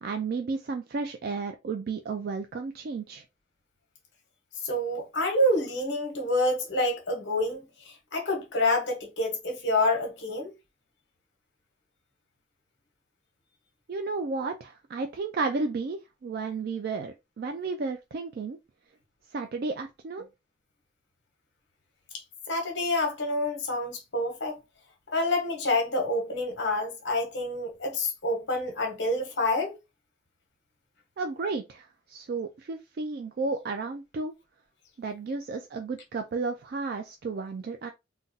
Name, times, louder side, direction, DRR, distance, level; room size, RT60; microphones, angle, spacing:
voice 1, 0.0-3.2 13.9-18.6 19.3-20.3 31.2-34.3 35.0-37.9, right 4 dB, 50° right, 0.3 m, -33 dB
voice 2, 4.6-10.5 22.5-24.6 25.1-29.8, left 1 dB, 65° left, 1.1 m, -27 dB
3.8 x 2.2 x 2.6 m
head